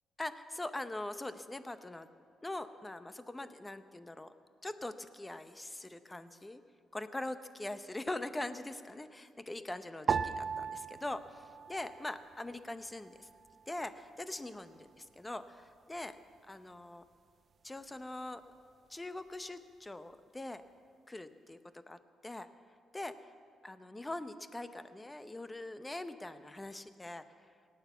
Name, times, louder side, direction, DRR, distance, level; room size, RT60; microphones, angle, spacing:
voice 1, 0.2-2.1 2.4-4.3 4.6-6.6 6.9-13.3 13.7-16.2 16.5-17.0 17.6-18.4 18.9-20.6 21.1-22.5 22.9-23.2 23.6-27.2, left 2 dB, 15° left, 11 dB, 0.7 m, -42 dB
sound 1, 10.1-12.6 12.9-13.8 14.4-14.8, right 6 dB, 45° right, 0.5 m, -38 dB
18.0 x 9.0 x 7.1 m, 2.3 s
cardioid pair, 90°, 0 cm